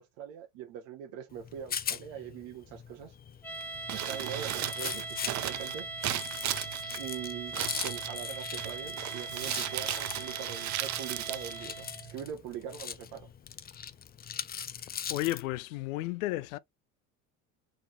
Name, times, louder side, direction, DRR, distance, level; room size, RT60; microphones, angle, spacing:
voice 1, 0.0-3.1 3.9-5.9 7.0-13.3, right 9 dB, 70° right, 1.2 m, -42 dB
Rattle, 1.3-15.4, left 8 dB, 25° left, 0.5 m, -41 dB
sound 1, 3.4-12.1, right 3 dB, 5° left, 1.5 m, -41 dB
Crumpling crinkling, 3.8-12.3, right 13 dB, 45° right, 0.6 m, -37 dB
voice 2, 15.1-16.6, left 17 dB, 85° left, 0.6 m, -32 dB
3.9 x 3.7 x 3.0 m
supercardioid pair, 90°, 40 cm